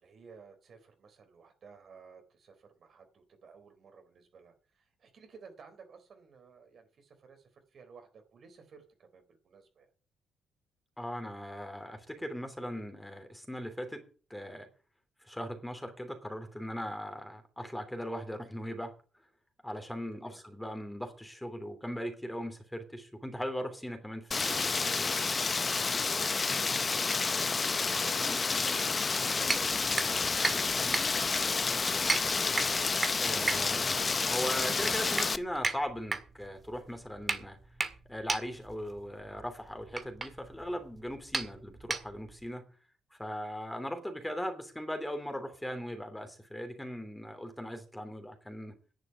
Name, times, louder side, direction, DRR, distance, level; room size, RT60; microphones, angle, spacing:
voice 1, 0.0-9.9 20.2-20.4 41.4-41.6, right 5 dB, 55° right, 3.7 m, -56 dB
voice 2, 11.0-14.7 15.2-18.9 19.6-25.1 33.2-37.6 38.1-42.7 43.1-48.7, equal, 5° left, 3.0 m, -39 dB
Rain, 24.3-35.4, left 4 dB, 30° left, 0.7 m, -30 dB
sound 1, 29.5-42.5, right 3 dB, 30° right, 1.8 m, -36 dB
11.0 x 6.8 x 9.2 m
cardioid pair, 90°, 0 cm